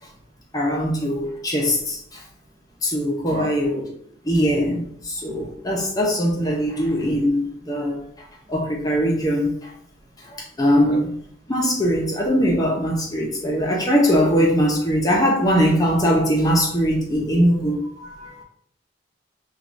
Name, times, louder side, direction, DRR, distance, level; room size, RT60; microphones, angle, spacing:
voice 1, 0.5-2.2 2.8-3.9 4.2-8.0 8.5-9.7 10.2-11.2 11.5-17.8, equal, 20° left, -1 dB, 0.6 m, -21 dB
voice 2, 18.0-18.4, right 1 dB, 35° right, 0 dB, 0.7 m, -34 dB
6.2 x 2.4 x 2.6 m, 0.68 s
head